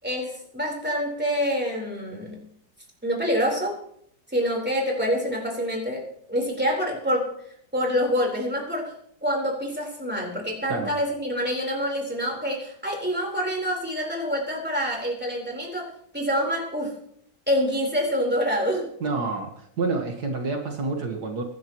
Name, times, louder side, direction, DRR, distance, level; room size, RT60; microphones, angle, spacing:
voice 1, 0.0-2.4 3.0-3.8 4.3-7.3 7.7-8.9 9.2-17.0 17.5-18.9, equal, 5° right, -1 dB, 4.1 m, -26 dB
voice 2, 19.0-21.4, right 3 dB, 65° right, 2 dB, 2.1 m, -28 dB
24.5 x 11.0 x 3.1 m, 0.69 s
omnidirectional pair, 1.8 m